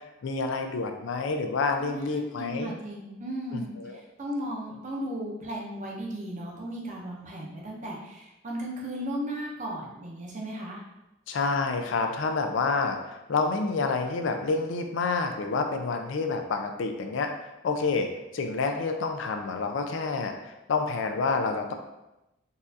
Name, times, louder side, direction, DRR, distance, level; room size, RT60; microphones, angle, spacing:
voice 1, 0.2-2.7 3.5-4.0 11.3-18.1 18.3-21.7, left 4 dB, 65° left, 5 dB, 0.4 m, -28 dB
voice 2, 1.8-10.8, equal, 35° right, -2 dB, 0.6 m, -36 dB
4.0 x 2.4 x 2.6 m, 0.95 s
head